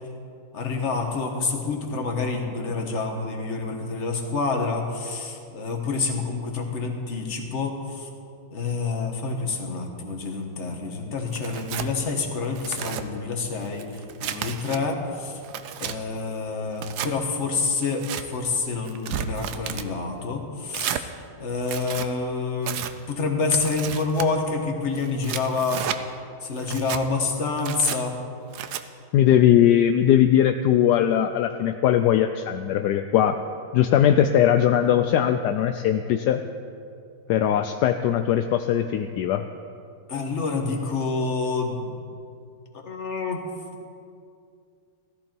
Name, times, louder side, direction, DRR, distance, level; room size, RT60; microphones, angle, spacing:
voice 1, 0.5-8.1 8.5-13.9 14.2-15.4 15.8-21.1 21.4-22.8 23.1-25.8 26.4-28.2 40.1-42.0 42.8-43.4, left 4 dB, 40° left, 2 dB, 1.6 m, -27 dB
Tearing, 11.3-11.9 12.4-13.0 13.6-14.8 15.3-16.0 16.7-17.1 17.8-18.2 18.9-19.9 20.7-21.0 21.6-22.1 22.6-22.9 23.6-24.3 25.0-26.0 26.6-27.0 27.6-28.0 28.5-28.8, right 10 dB, 70° right, 1.1 m, -32 dB
voice 2, 29.1-33.4 33.7-36.4 37.3-39.5, left 10 dB, 75° left, 7 dB, 1.0 m, -20 dB
16.0 x 13.5 x 4.5 m, 2.5 s
omnidirectional pair, 2.1 m